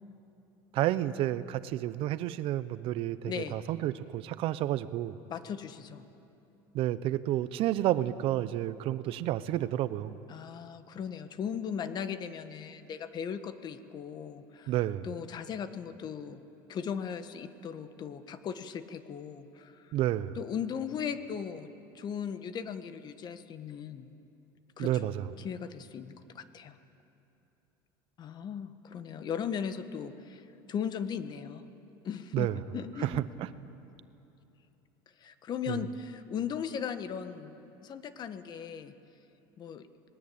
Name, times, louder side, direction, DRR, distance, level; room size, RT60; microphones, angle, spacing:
voice 1, 0.7-5.2 6.7-10.1 14.7-15.1 19.9-20.4 24.8-25.3 32.3-32.6 33.0-33.5 35.7-35.8, right 13 dB, 55° right, 15 dB, 0.8 m, -30 dB
voice 2, 3.2-3.6 5.3-6.1 10.3-14.7 15.0-16.4 16.7-20.0 20.3-21.7 21.9-24.1 24.8-25.1 25.4-26.8 28.2-31.6 32.0-33.2 35.2-38.9 39.6-39.9, left 7 dB, 40° left, 10 dB, 1.5 m, -38 dB
26.0 x 20.0 x 8.7 m, 2.9 s
supercardioid pair, 110°, 11 cm